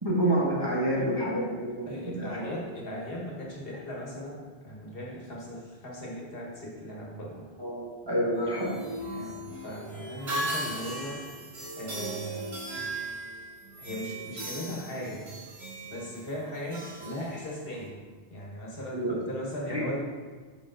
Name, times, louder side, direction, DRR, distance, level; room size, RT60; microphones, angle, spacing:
voice 1, 0.0-2.3 7.6-8.8 18.9-19.1 19.7-19.8, right 1 dB, 25° right, -6 dB, 1.4 m, -28 dB
voice 2, 1.9-7.5 9.1-11.2 11.8-12.6 13.8-15.3 15.9-17.9 18.3-20.0, equal, 60° left, -3 dB, 1.6 m, -38 dB
sound 1, 8.3-17.9, right 1 dB, 75° right, 1.5 m, -38 dB
7.0 x 5.3 x 3.8 m, 1.4 s
omnidirectional pair, 1.1 m